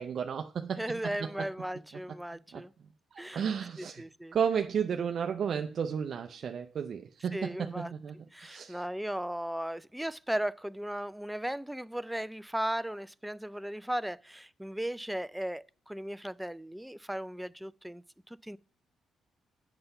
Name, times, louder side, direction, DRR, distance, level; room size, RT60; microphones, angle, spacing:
voice 1, 0.0-1.5 2.5-2.6 3.1-4.0 4.3-8.9, right 7 dB, 55° right, 0.5 m, -33 dB
voice 2, 0.7-2.7 3.2-3.4 3.8-4.4 7.3-7.9 8.3-18.6, right 1 dB, 5° right, 0.4 m, -36 dB
7.8 x 6.7 x 5.6 m
cardioid pair, 90°, 0 cm